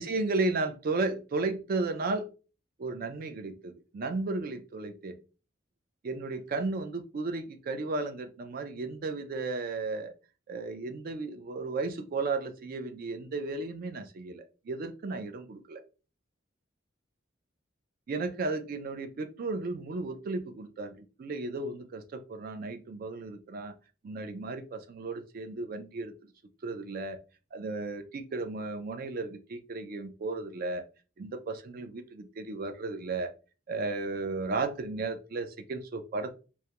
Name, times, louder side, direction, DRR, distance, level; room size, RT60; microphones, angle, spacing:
voice 1, 0.0-2.3 2.8-5.2 6.0-10.1 10.5-15.8 18.1-23.7 24.0-26.1 26.6-27.2 27.5-30.8 31.2-33.3 33.7-36.3, right 3 dB, 50° right, 7 dB, 0.3 m, -34 dB
2.2 x 2.1 x 2.8 m, 0.34 s
head